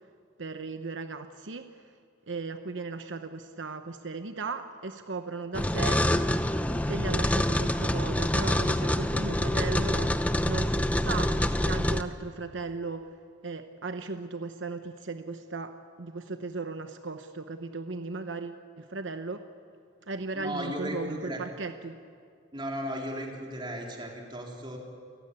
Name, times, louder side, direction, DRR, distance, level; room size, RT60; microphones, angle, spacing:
voice 1, 0.4-1.9 2.3-6.1 6.9-13.1 13.4-19.5 20.1-22.0, right 3 dB, 80° right, 8 dB, 1.0 m, -37 dB
sound 1, 5.5-12.0, left 1 dB, 10° left, 0.7 m, -26 dB
voice 2, 20.3-21.4 22.5-24.8, equal, 25° right, 0 dB, 3.9 m, -35 dB
29.0 x 15.5 x 9.8 m, 2.2 s
head